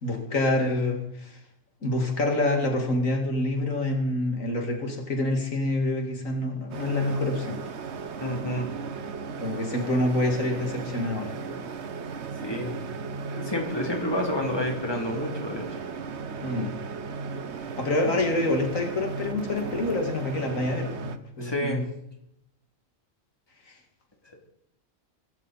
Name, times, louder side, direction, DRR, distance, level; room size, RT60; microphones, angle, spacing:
voice 1, 0.0-1.4 1.8-7.6 9.4-11.6 16.4-16.7 17.8-21.9, left 2 dB, 80° left, 2 dB, 2.6 m, -27 dB
sound 1, 6.7-21.2, right 5 dB, 60° right, 1.2 m, -36 dB
voice 2, 8.2-8.7 12.4-12.8 13.2-15.7 18.1-18.2 21.4-21.8, left 1 dB, 20° left, 1 dB, 3.0 m, -29 dB
22.5 x 12.0 x 4.2 m, 0.76 s
omnidirectional pair, 1.4 m